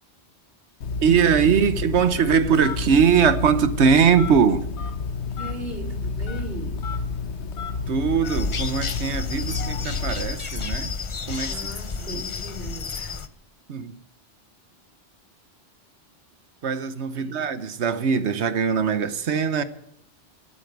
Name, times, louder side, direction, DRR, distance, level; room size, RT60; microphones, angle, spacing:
Telephone, 0.8-10.5, left 4 dB, 75° left, 1.3 m, -30 dB
voice 1, 1.0-4.6 7.9-10.9 11.3-11.5 13.7-14.0 16.6-19.6, right 6 dB, 75° right, 1.3 m, -21 dB
voice 2, 5.3-6.9 9.4-9.6 11.4-13.2 17.1-17.5, right 2 dB, 60° right, 2.9 m, -38 dB
sound 1, 8.2-13.3, left 4 dB, 35° left, 0.6 m, -31 dB
13.5 x 8.6 x 9.3 m
omnidirectional pair, 1.2 m